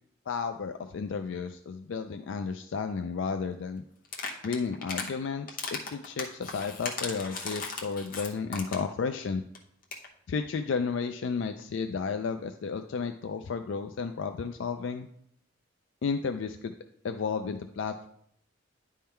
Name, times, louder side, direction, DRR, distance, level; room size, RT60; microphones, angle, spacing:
voice 1, 0.3-3.8 4.4-9.4 10.3-15.1 16.0-16.7 17.0-18.1, left 5 dB, 65° left, 7 dB, 0.4 m, -32 dB
sound 1, 4.0-5.1 5.5-8.9 9.2-9.3 9.5-9.6 9.8-10.1, left 4 dB, 45° left, 0.9 m, -36 dB
10.0 x 3.7 x 4.3 m, 0.70 s
head